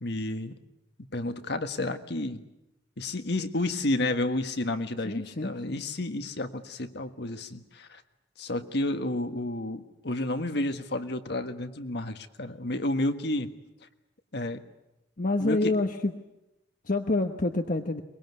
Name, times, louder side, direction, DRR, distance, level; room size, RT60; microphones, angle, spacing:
voice 1, 0.0-0.5 1.1-2.4 3.0-8.0 8.4-13.5 14.3-14.6 15.4-15.7, left 2 dB, 65° left, 8 dB, 1.6 m, -31 dB
voice 2, 5.0-5.8 15.2-16.1 16.8-18.0, left 2 dB, 50° left, 6 dB, 1.1 m, -27 dB
23.5 x 22.0 x 9.6 m, 0.94 s
head